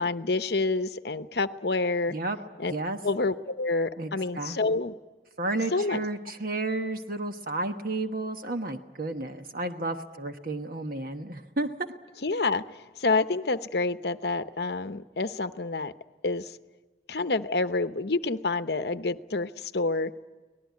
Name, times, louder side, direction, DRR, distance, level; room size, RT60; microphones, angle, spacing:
voice 1, 0.0-2.2 2.6-2.7 3.0-4.9 5.7-6.0 12.2-15.9 16.2-16.6 17.1-20.1, left 3 dB, 60° left, 11 dB, 0.8 m, -28 dB
voice 2, 4.0-4.8 5.4-11.7, right 2 dB, 50° right, 6 dB, 1.2 m, -32 dB
24.5 x 19.0 x 9.5 m, 1.3 s
head